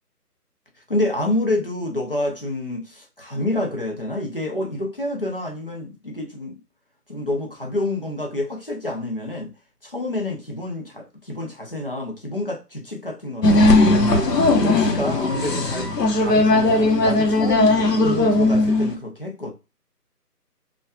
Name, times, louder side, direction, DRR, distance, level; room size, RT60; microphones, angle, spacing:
voice 1, 0.9-6.6 7.1-9.5 9.8-13.7 14.1-15.9 16.2-19.5, left 1 dB, 35° left, 1 dB, 0.8 m, -28 dB
sound 1, 13.4-18.9, left 2 dB, 80° left, 1.2 m, -18 dB
5.6 x 2.5 x 2.3 m, 0.29 s
figure-of-eight pair, 180°, 47 cm